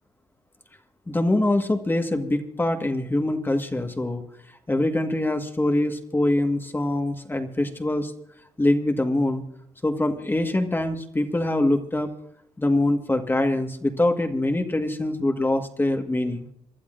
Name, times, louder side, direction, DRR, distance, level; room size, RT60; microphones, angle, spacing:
voice 1, 1.1-4.2 4.7-8.1 8.6-9.4 9.8-12.1 12.6-16.5, left 1 dB, 15° left, 5 dB, 1.6 m, -24 dB
27.5 x 11.5 x 2.6 m, 0.70 s
supercardioid pair, 70°, 12 cm